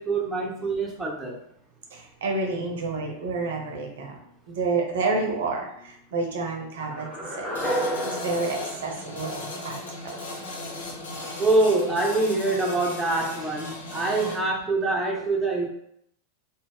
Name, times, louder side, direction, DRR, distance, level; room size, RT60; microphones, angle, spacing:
voice 1, 0.0-1.4 11.4-15.7, right 2 dB, 10° right, -2 dB, 0.5 m, -25 dB
voice 2, 1.9-4.2 4.5-7.5 8.0-9.8 10.0-10.2, right 3 dB, 60° right, 1 dB, 0.5 m, -29 dB
sound 1, 6.8-9.9, equal, 5° left, 0.9 m, -32 dB
sound 2, 7.5-14.4, left 2 dB, 65° left, 0.6 m, -37 dB
2.4 x 2.0 x 3.3 m, 0.70 s
figure-of-eight pair, 90°, 0 cm